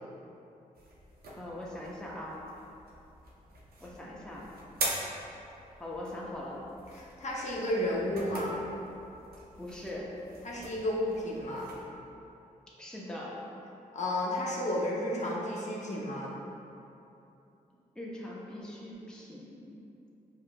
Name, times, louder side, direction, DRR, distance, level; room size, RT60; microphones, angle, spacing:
sound 1, 0.7-11.8, right 2 dB, 75° right, 0.6 m, -43 dB
voice 1, 1.4-2.4 3.8-4.4 5.8-6.6 9.6-10.1 12.8-13.3 18.0-19.8, left 1 dB, 5° left, -5 dB, 0.7 m, -41 dB
voice 2, 6.9-8.6 10.4-11.7 13.9-16.3, left 1 dB, 50° left, -4 dB, 0.7 m, -32 dB
4.8 x 2.7 x 2.2 m, 2.8 s
supercardioid pair, 45°, 16 cm